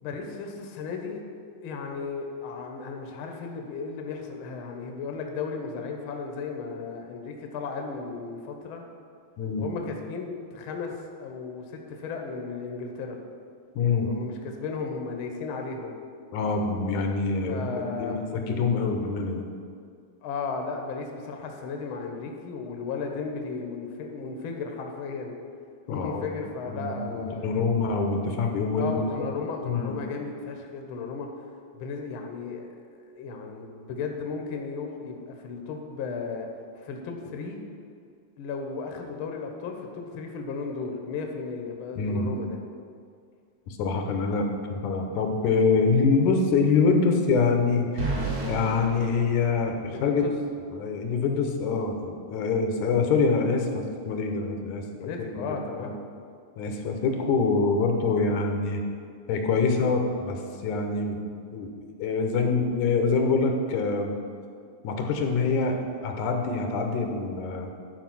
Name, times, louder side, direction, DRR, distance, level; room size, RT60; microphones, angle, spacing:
voice 1, 0.0-1.2 1.6-8.8 9.6-13.2 14.0-16.0 17.5-18.2 20.2-25.4 25.9-27.6 28.8-31.3 31.7-32.7 33.1-36.5 36.8-37.6 38.4-42.6 49.9-50.3 55.0-55.9, left 4 dB, 60° left, 3 dB, 1.4 m, -35 dB
voice 2, 13.8-14.1 16.3-19.4 25.9-26.4 26.7-29.0 29.6-30.0 42.0-42.3 43.7-48.1 48.5-50.2 50.7-55.1 55.4-55.5 55.8-55.9 56.6-58.8 59.3-61.2 61.5-61.7 62.0-64.2 64.8-67.7, left 4 dB, 85° left, 3 dB, 2.4 m, -25 dB
sound 1, 48.0-50.1, right 2 dB, 55° right, 3.4 m, -32 dB
11.5 x 4.8 x 6.1 m, 2.2 s
omnidirectional pair, 3.4 m